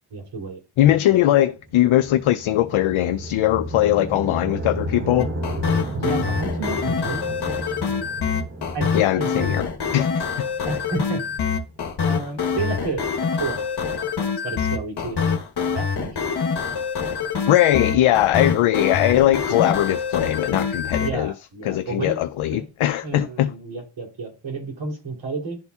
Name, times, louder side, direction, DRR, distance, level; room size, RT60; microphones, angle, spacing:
voice 1, 0.1-0.6 0.9-1.0 5.9-7.6 8.7-9.6 10.7-11.4 12.1-13.0 13.3-13.6 13.9-14.1 14.4-15.2 15.7-16.5 20.9-22.7 23.0-25.6, right 3 dB, 65° right, 3.3 m, -31 dB
voice 2, 0.8-5.3 8.9-9.7 9.9-10.3 17.5-21.3 21.6-23.5, left 13 dB, 80° left, 0.5 m, -20 dB
sound 1, 1.5-11.8, right 1 dB, 25° right, 1.0 m, -33 dB
sound 2, 5.2-21.1, left 6 dB, 55° left, 1.2 m, -25 dB
11.5 x 4.0 x 2.3 m
cardioid pair, 70°, 48 cm